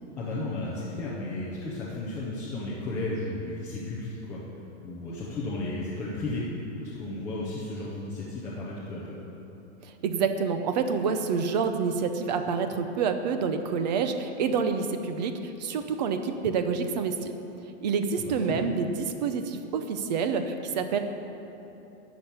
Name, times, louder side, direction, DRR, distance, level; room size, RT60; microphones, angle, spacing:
voice 1, 0.2-4.4 4.8-9.2 18.2-18.6, left 2 dB, 10° left, -7 dB, 0.5 m, -34 dB
voice 2, 9.8-17.3 17.8-21.0, right 5 dB, 35° right, 8 dB, 0.7 m, -28 dB
12.0 x 6.1 x 8.5 m, 3.0 s
supercardioid pair, 180°, 35 cm